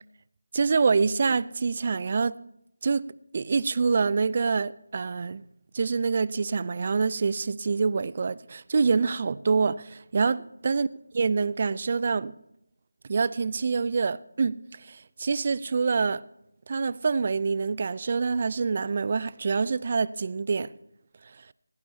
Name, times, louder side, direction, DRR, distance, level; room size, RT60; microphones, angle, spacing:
voice 1, 0.5-2.4 2.8-3.1 3.3-5.4 5.7-10.9 11.1-12.3 13.1-16.2 16.7-20.7, right 4 dB, 40° right, 0.4 m, -26 dB
21.0 x 17.0 x 2.8 m
figure-of-eight pair, 165°, 0 cm